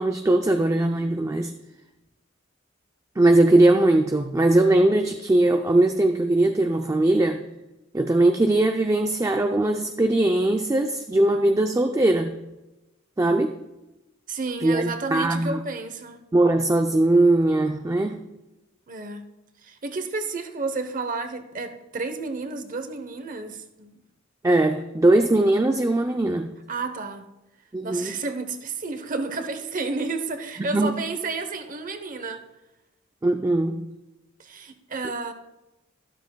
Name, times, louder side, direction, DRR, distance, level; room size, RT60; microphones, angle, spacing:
voice 1, 0.0-1.5 3.2-7.4 7.9-12.4 13.2-13.6 14.6-15.6 16.3-18.2 24.4-26.5 27.7-28.1 30.6-30.9 33.2-33.9, right 2 dB, 15° right, 5 dB, 0.4 m, -20 dB
voice 2, 14.3-16.2 18.9-19.3 19.6-24.0 26.7-27.3 27.8-32.4 34.4-35.3, right 3 dB, 45° right, 8 dB, 0.8 m, -31 dB
12.5 x 12.5 x 2.2 m, 1.0 s
head